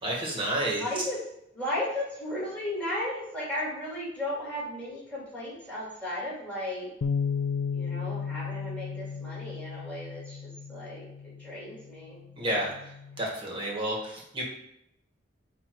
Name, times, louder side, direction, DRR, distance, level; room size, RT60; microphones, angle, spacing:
voice 1, 0.0-0.8 12.4-12.7 13.2-14.4, right 1 dB, 25° right, -2 dB, 1.8 m, -30 dB
voice 2, 0.7-1.3 1.5-6.9 7.7-12.7, left 1 dB, 5° left, -8 dB, 2.8 m, -35 dB
Bass guitar, 7.0-13.3, left 6 dB, 55° left, 0.3 m, -34 dB
8.6 x 3.0 x 4.7 m, 0.79 s
head